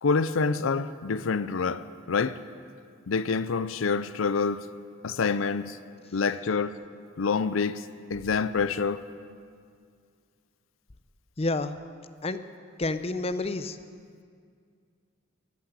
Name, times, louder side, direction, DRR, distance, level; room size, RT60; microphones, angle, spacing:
voice 1, 0.0-2.4 3.1-4.7 5.0-5.8 6.1-6.8 7.2-7.8 8.1-9.0, left 5 dB, 75° left, 14 dB, 0.5 m, -27 dB
voice 2, 11.4-11.7 12.2-12.4 12.8-13.8, left 2 dB, 30° left, 11 dB, 0.6 m, -29 dB
14.5 x 12.0 x 8.1 m, 2.2 s
head